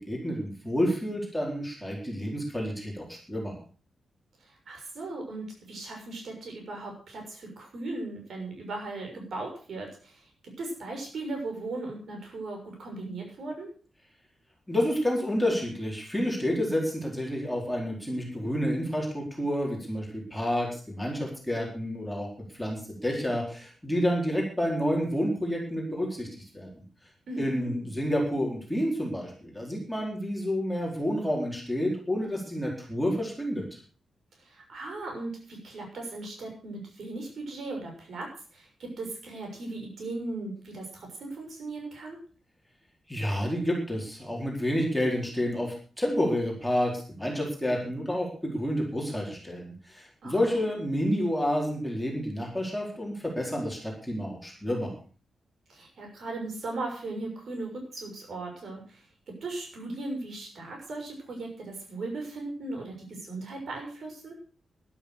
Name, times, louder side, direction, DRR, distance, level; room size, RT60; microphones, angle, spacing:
voice 1, 0.1-3.6 14.7-22.3 22.5-26.3 26.5-26.7 27.4-33.6 43.1-54.9, equal, ahead, -2 dB, 4.3 m, -29 dB
voice 2, 4.7-10.2 10.6-13.7 27.3-27.7 34.4-38.3 38.5-42.2 50.2-50.4 55.7-59.0 59.4-64.3, right 2 dB, 55° right, 1 dB, 6.6 m, -37 dB
12.5 x 12.0 x 6.5 m, 0.41 s
wide cardioid pair, 175°, 0 cm